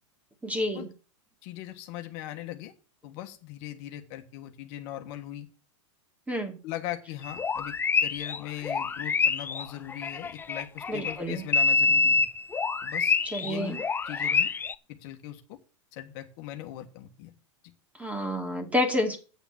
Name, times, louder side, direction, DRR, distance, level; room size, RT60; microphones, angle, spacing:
voice 1, 0.4-0.9 6.3-6.6 10.9-11.4 13.2-13.8 17.9-19.2, left 1 dB, 10° right, 5 dB, 2.4 m, -29 dB
voice 2, 1.4-2.7 3.0-5.5 6.6-7.7 8.0-12.3 12.8-13.2 13.4-13.8 14.1-14.5 14.9-15.6 15.9-17.3, left 13 dB, 50° left, 5 dB, 1.4 m, -39 dB
sound 1, 7.2-11.1 11.5-14.7, left 4 dB, 15° left, 0.4 m, -26 dB
8.1 x 7.1 x 7.1 m, 0.37 s
hypercardioid pair, 120°, 16 cm